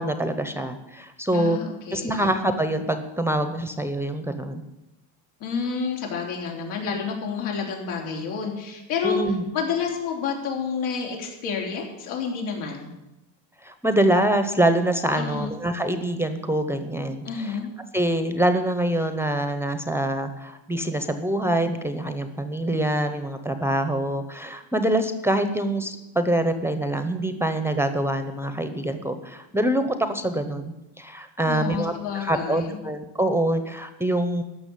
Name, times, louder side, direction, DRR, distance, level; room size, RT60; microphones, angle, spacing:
voice 1, 0.0-1.6 1.9-4.6 9.0-9.5 13.6-17.2 17.9-34.4, right 1 dB, 5° right, 9 dB, 0.7 m, -25 dB
voice 2, 1.3-2.3 5.4-9.2 9.5-12.9 15.1-15.5 17.2-17.7 31.5-32.8, left 6 dB, 80° left, 0 dB, 3.7 m, -29 dB
14.0 x 6.2 x 10.0 m, 0.96 s
cardioid pair, 140°, 48 cm